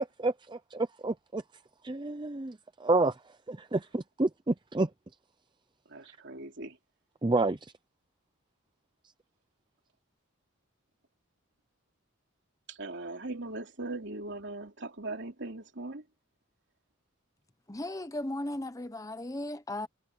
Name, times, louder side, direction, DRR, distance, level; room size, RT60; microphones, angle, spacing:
voice 1, 0.0-1.4 1.8-3.2 3.5-4.9 7.2-7.7, right 2 dB, 25° right, 0.5 m, -29 dB
voice 2, 5.9-6.8 12.7-16.0, right 2 dB, 60° right, 3.1 m, -39 dB
voice 3, 17.7-19.9, left 1 dB, 15° left, 1.0 m, -36 dB
head